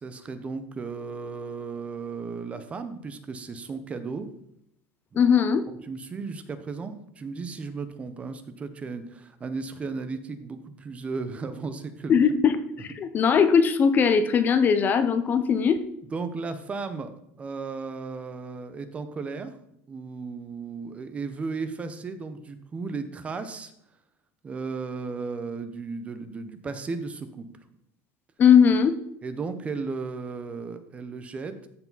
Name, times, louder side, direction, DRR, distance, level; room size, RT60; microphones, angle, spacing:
voice 1, 0.0-4.3 5.1-5.2 5.9-12.2 16.1-19.6 19.9-23.7 24.4-27.5 29.2-31.7, right 4 dB, 20° right, 10 dB, 0.7 m, -35 dB
voice 2, 5.1-5.7 12.1-15.8 28.4-28.9, left 6 dB, 25° left, 11 dB, 0.5 m, -20 dB
14.0 x 4.8 x 4.0 m, 0.77 s
cardioid pair, 160°, 7 cm